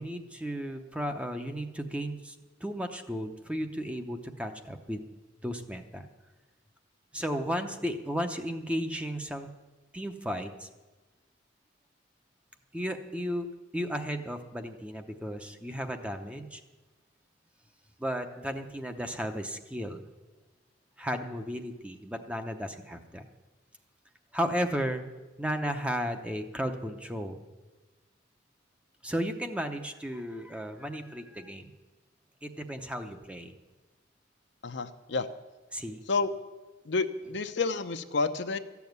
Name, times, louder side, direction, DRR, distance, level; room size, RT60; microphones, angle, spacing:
voice 1, 0.0-2.4 2.6-5.0 5.4-6.1 7.1-9.5 9.9-10.7 12.7-13.5 13.7-16.6 18.0-20.0 21.0-23.2 24.3-25.0 25.4-27.4 29.0-31.7 32.4-33.5 35.7-36.0, equal, 5° right, 6 dB, 0.7 m, -34 dB
voice 2, 34.6-35.3 36.1-36.3 36.9-38.6, left 4 dB, 65° left, 8 dB, 0.7 m, -29 dB
14.0 x 7.1 x 9.4 m, 1.2 s
head